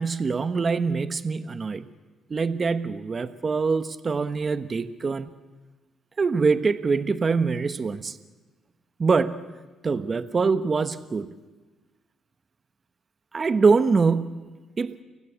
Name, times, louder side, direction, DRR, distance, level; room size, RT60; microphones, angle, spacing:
voice 1, 0.0-1.9 2.3-5.3 6.2-8.2 9.0-9.4 9.8-11.3 13.3-15.0, right 4 dB, 35° right, 12 dB, 1.2 m, -24 dB
30.0 x 18.5 x 8.6 m, 1.3 s
cardioid pair, 90°, 0 cm